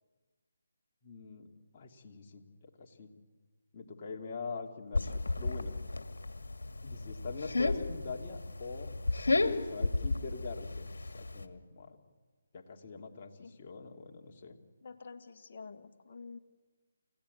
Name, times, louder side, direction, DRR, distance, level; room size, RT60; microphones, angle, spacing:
voice 1, 1.0-1.5 1.7-2.4 2.8-3.1 3.7-5.7 6.8-8.9 9.4-12.0 12.5-14.6, left 4 dB, 35° left, 1 dB, 2.6 m, -44 dB
sound 1, 4.9-11.5, left 3 dB, 75° left, 1.9 m, -33 dB
voice 2, 14.8-16.4, left 4 dB, 50° left, 6 dB, 1.7 m, -48 dB
29.0 x 16.5 x 8.5 m, 1.4 s
figure-of-eight pair, 155°, 0 cm